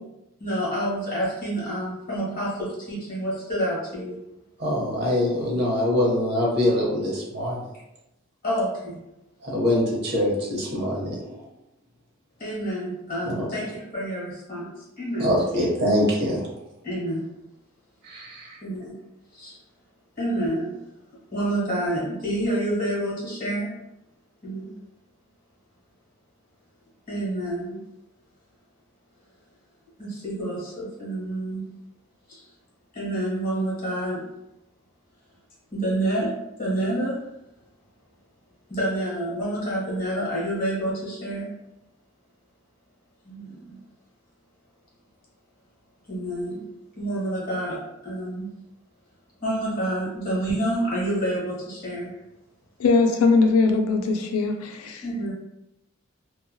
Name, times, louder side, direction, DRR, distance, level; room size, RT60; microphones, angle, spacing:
voice 1, 0.4-4.2 8.4-9.0 12.4-15.6 16.8-17.2 18.6-19.0 19.3-19.6 20.2-20.7 21.3-23.7 24.4-24.7 27.1-27.8 30.0-31.6 32.3-32.4 32.9-34.2 35.7-37.2 38.7-41.5 43.2-43.8 46.1-46.6 47.0-48.5 49.4-52.1 55.0-55.3, right 1 dB, 40° left, -6 dB, 1.1 m, -28 dB
voice 2, 4.6-7.6 9.4-11.4 13.2-13.4 15.2-16.4 18.0-18.6, left 1 dB, 45° right, -4 dB, 0.7 m, -24 dB
voice 3, 52.8-55.0, left 4 dB, 85° left, 4 dB, 0.4 m, -20 dB
2.6 x 2.2 x 2.2 m, 0.90 s
head